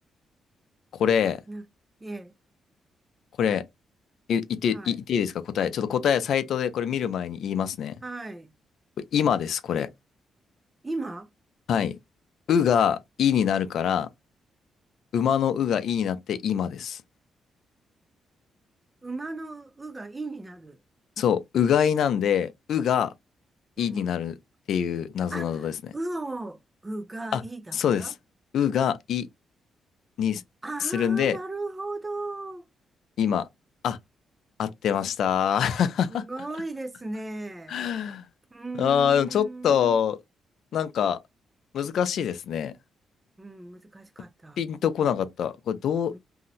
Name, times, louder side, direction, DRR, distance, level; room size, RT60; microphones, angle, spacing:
voice 1, 1.0-1.4 3.4-3.6 4.3-7.9 9.1-9.9 11.7-12.0 12.5-14.1 15.1-17.0 21.2-23.1 23.8-24.3 24.7-25.7 27.3-27.4 27.7-28.1 28.5-29.3 30.2-30.4 30.9-31.4 33.2-33.5 33.8-34.0 34.6-36.2 37.7-38.3 38.8-40.2 40.7-41.2 41.7-42.7 44.6-46.1, left 8 dB, 75° left, 0.5 m, -24 dB
voice 2, 2.0-2.3 4.7-5.0 8.0-8.5 10.8-11.3 19.0-20.8 23.8-24.2 25.3-28.1 30.6-32.7 36.1-37.8 38.5-40.0 43.4-44.6 46.1-46.2, right 2 dB, 20° right, 0.5 m, -36 dB
2.8 x 2.1 x 3.8 m
cardioid pair, 95°, 0 cm